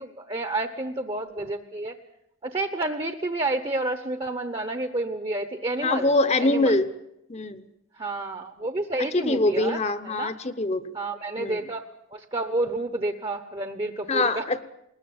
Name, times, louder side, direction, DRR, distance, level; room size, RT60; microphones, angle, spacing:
voice 1, 0.0-1.9 2.4-6.1 6.4-6.7 8.0-10.3 10.9-11.8 12.1-14.4, right 2 dB, 25° right, 9 dB, 1.0 m, -30 dB
voice 2, 5.8-6.9 7.3-7.6 9.0-10.9 11.4-11.6 14.1-14.6, left 2 dB, 30° left, 13 dB, 0.9 m, -24 dB
20.5 x 20.0 x 8.8 m, 0.83 s
head